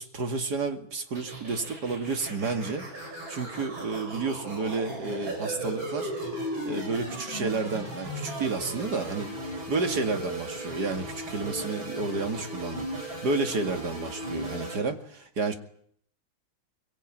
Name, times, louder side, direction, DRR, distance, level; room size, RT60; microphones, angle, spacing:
voice 1, 0.0-2.9 3.3-6.1 6.7-9.3 9.7-15.5, right 3 dB, 55° right, 6 dB, 2.8 m, -31 dB
sound 1, 1.2-14.8, right 1 dB, 70° right, 7.4 m, -36 dB
23.5 x 22.0 x 9.2 m, 0.64 s
omnidirectional pair, 2.2 m